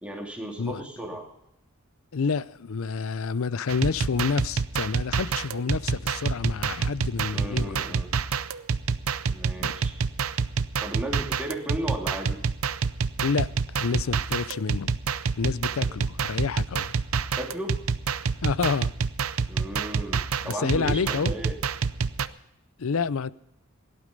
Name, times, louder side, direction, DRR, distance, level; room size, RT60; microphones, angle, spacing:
voice 1, 0.0-1.3 7.3-8.1 9.3-10.0 10.8-12.4 15.8-15.9 17.4-17.8 19.5-21.5, right 1 dB, 5° right, 2.8 m, -35 dB
voice 2, 2.1-7.9 9.6-9.7 13.2-14.9 15.4-16.9 18.4-18.9 20.4-21.3 22.8-23.3, left 5 dB, 75° left, 0.5 m, -29 dB
sound 1, 3.7-22.3, right 5 dB, 80° right, 0.6 m, -28 dB
17.5 x 11.5 x 5.3 m
head